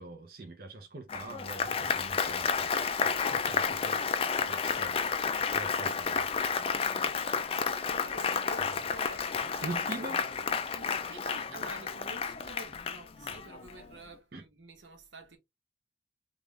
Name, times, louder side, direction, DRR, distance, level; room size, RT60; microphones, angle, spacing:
voice 1, 0.0-4.0 4.4-5.0 5.5-6.3 8.6-8.7 9.6-10.2 14.3-14.4, right 2 dB, 50° right, 0.7 m, -43 dB
Applause, 1.1-13.8, left 6 dB, 30° left, 0.3 m, -31 dB
voice 2, 7.8-10.2 10.7-15.4, right 2 dB, 85° right, 1.0 m, -49 dB
3.7 x 2.5 x 3.2 m
head